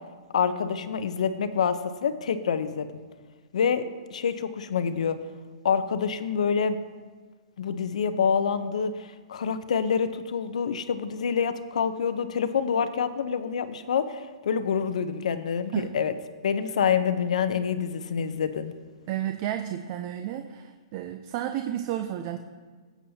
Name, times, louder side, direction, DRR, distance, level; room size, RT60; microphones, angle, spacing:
voice 1, 0.3-3.0 3.5-5.2 5.6-6.8 7.6-16.1 16.4-18.7, left 6 dB, 75° left, 11 dB, 0.7 m, -27 dB
voice 2, 19.1-22.4, right 11 dB, 35° right, 7 dB, 0.5 m, -32 dB
16.0 x 8.3 x 2.8 m, 1.5 s
hypercardioid pair, 155°, 4 cm